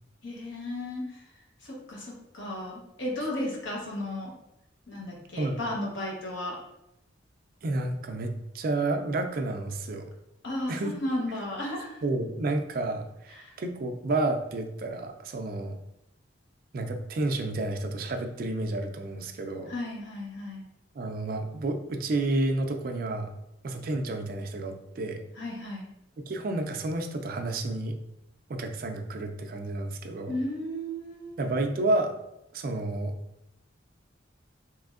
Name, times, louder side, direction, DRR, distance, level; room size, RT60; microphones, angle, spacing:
voice 1, 0.2-4.3 4.9-6.6 10.4-12.0 13.3-13.6 19.7-20.7 25.4-25.9 30.3-31.5, left 1 dB, 75° left, -2 dB, 0.9 m, -34 dB
voice 2, 7.6-10.1 10.7-10.9 12.0-15.8 16.7-19.7 21.0-23.3 23.6-25.2 26.2-27.9 28.5-30.4 31.4-32.1 32.5-33.1, right 2 dB, 45° right, 5 dB, 0.3 m, -30 dB
3.3 x 3.0 x 2.4 m, 0.86 s
head